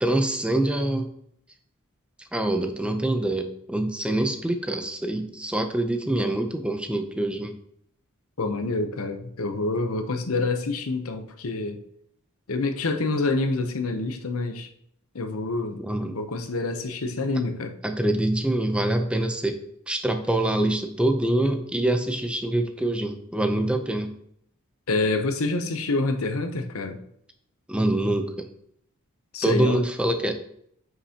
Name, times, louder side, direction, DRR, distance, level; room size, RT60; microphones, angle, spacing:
voice 1, 0.0-1.1 2.3-7.6 15.8-16.2 17.8-19.6 19.9-24.1 27.7-28.5 29.4-30.4, right 1 dB, 5° right, 6 dB, 0.6 m, -25 dB
voice 2, 8.4-11.8 12.5-14.7 15.1-17.8 24.9-27.0 29.3-29.8, left 3 dB, 75° left, 7 dB, 0.8 m, -27 dB
9.5 x 5.9 x 2.9 m, 0.70 s
head